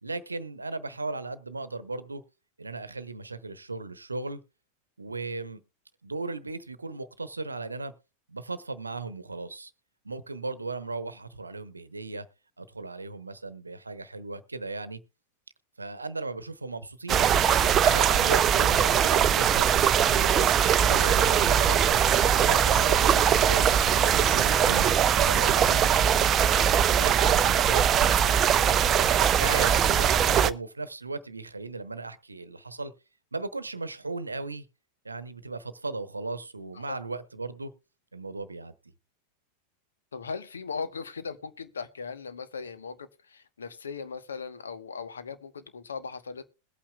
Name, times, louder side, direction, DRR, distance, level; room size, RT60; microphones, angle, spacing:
voice 1, 0.0-2.2 2.6-4.4 5.0-5.6 6.0-7.9 8.3-9.7 10.0-12.3 12.6-15.0 15.8-17.3 17.8-19.7 20.1-21.8 22.2-24.9 25.2-26.5 26.9-27.9 29.4-32.9 33.3-34.7 35.0-37.7 38.1-38.7, right 3 dB, 80° right, 0.9 m, -37 dB
sound 1, 17.1-30.5, right 8 dB, 30° right, 0.5 m, -21 dB
voice 2, 40.1-46.5, left 5 dB, 70° left, 1.1 m, -38 dB
21.5 x 8.6 x 2.3 m
figure-of-eight pair, 90°, 0 cm